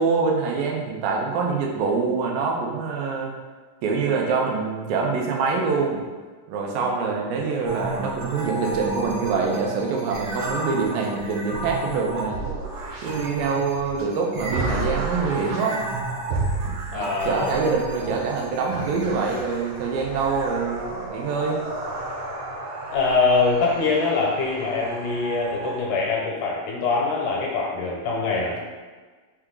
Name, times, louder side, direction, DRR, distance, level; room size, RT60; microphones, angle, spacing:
voice 1, 0.0-3.3 3.8-6.0 6.5-12.4 13.0-15.9 16.9-21.6, right 4 dB, 90° right, 0 dB, 2.4 m, -25 dB
sound 1, 7.6-25.8, right 2 dB, 75° right, 2.0 m, -32 dB
voice 2, 16.9-17.5 22.9-28.6, left 4 dB, 80° left, -2 dB, 2.1 m, -23 dB
5.8 x 2.2 x 3.7 m, 1.4 s
omnidirectional pair, 3.9 m